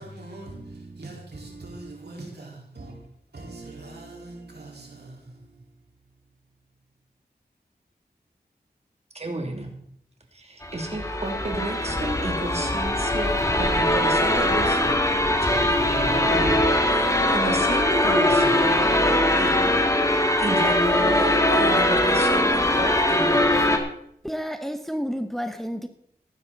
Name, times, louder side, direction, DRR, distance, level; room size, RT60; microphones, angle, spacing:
voice 1, 0.0-5.7, right 2 dB, 75° right, 4.3 m, -43 dB
voice 2, 9.1-9.7 10.3-15.0 15.4-18.8 19.4-19.5 20.4-23.7, right 2 dB, 40° right, 2.8 m, -32 dB
sound 1, 10.6-23.8, left 1 dB, 20° left, 2.1 m, -21 dB
voice 3, 24.2-25.9, equal, ahead, 1.0 m, -30 dB
15.5 x 11.5 x 4.1 m
wide cardioid pair, 55°, 17 cm